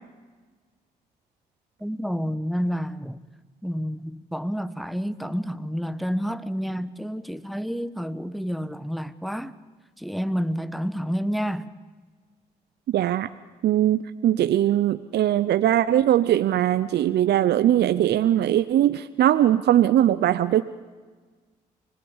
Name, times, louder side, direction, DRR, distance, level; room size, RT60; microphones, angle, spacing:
voice 1, 1.8-3.2 3.6-9.5 10.0-11.7, equal, ahead, 1.3 m, -29 dB
voice 2, 12.9-13.3 13.6-20.6, right 12 dB, 65° right, 0.7 m, -20 dB
25.5 x 19.0 x 7.3 m
hypercardioid pair, 45°, 19 cm